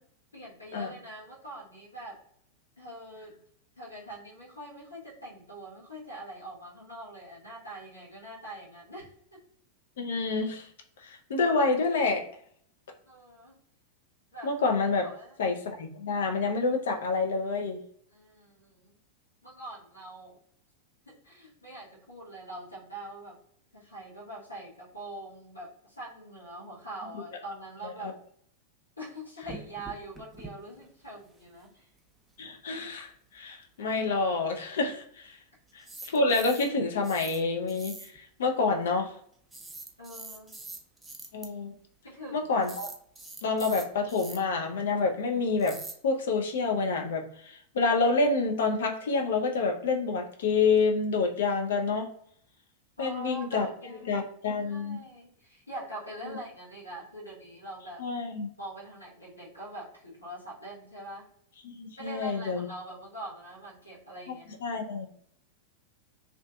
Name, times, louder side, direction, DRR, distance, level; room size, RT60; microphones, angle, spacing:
voice 1, 0.3-2.2 2.8-3.3 3.8-9.4 13.1-13.6 14.3-14.5 15.0-15.5 18.1-18.9 19.4-20.4 21.1-23.4 23.7-28.2 29.0-31.8 40.0-40.5 42.0-42.5 53.0-54.2 54.5-58.0 58.6-61.3 62.0-64.6, right 1 dB, 80° left, -6 dB, 1.0 m, -43 dB
voice 2, 10.0-10.7 11.0-12.3 14.4-15.1 15.4-17.8 27.1-27.2 28.0-28.1 32.4-35.4 35.7-38.1 38.4-39.1 41.3-41.7 42.3-42.9 43.4-45.8 46.0-52.1 53.0-53.7 54.1-55.0 56.2-56.4 58.0-58.5 61.6-62.7 64.3-64.4 64.6-65.1, left 4 dB, 60° left, 3 dB, 0.5 m, -28 dB
sound 1, 29.4-30.5 30.8-30.9 31.2-31.3 35.7-36.8 37.0-37.4 37.7-38.2 39.5-41.5 42.6-44.4 45.6-45.9, right 3 dB, 10° right, 0.4 m, -43 dB
2.5 x 2.4 x 2.2 m, 0.65 s
figure-of-eight pair, 90°, 0 cm